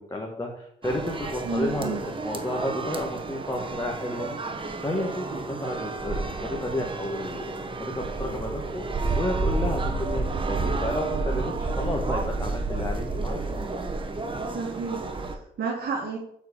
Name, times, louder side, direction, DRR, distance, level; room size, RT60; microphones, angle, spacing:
voice 1, 0.0-4.5 4.8-7.5 7.8-8.8 9.1-13.4, left 1 dB, 15° left, -1 dB, 1.7 m, -31 dB
sound 1, 0.8-15.4, right 3 dB, 25° right, 1.3 m, -30 dB
voice 2, 1.5-2.0 14.5-16.2, right 4 dB, 55° right, -1 dB, 2.1 m, -31 dB
8.0 x 4.8 x 6.9 m, 0.71 s
cardioid pair, 90°, 20 cm